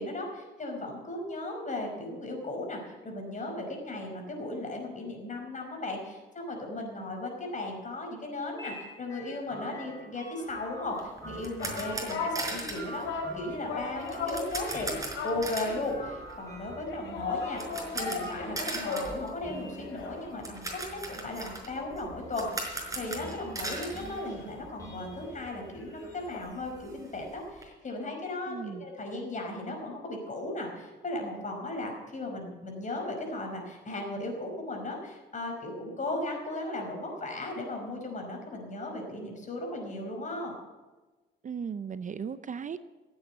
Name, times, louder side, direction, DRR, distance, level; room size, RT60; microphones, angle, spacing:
voice 1, 0.0-14.9 15.2-17.6 17.9-40.5, left 2 dB, 40° left, 2 dB, 5.1 m, -36 dB
sound 1, 8.6-27.3, equal, 15° left, 5.6 m, -47 dB
sound 2, 11.0-24.9 25.2-25.3 25.7-25.8 26.1-27.6, right 2 dB, 15° right, 5.1 m, -40 dB
sound 3, 11.1-16.0 16.9-19.3 19.6-21.5 21.8-21.9 22.3-26.4, left 4 dB, 80° left, 4.0 m, -38 dB
voice 2, 28.5-28.9 41.4-42.8, right 6 dB, 40° right, 13 dB, 0.6 m, -37 dB
15.0 x 8.9 x 8.2 m, 1.2 s
cardioid pair, 90°, 20 cm